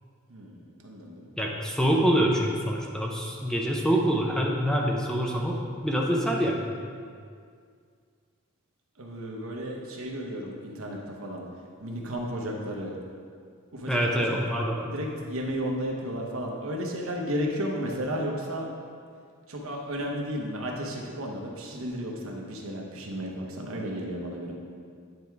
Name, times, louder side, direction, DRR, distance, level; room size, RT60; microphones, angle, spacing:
voice 1, 0.8-1.3 9.0-11.4 11.8-12.9 13.7-14.4 14.8-18.7 19.5-24.5, equal, 70° right, 0 dB, 1.0 m, -33 dB
voice 2, 1.4-6.7 13.9-14.9, equal, 5° left, -1 dB, 0.5 m, -25 dB
9.3 x 3.5 x 4.6 m, 2.1 s
head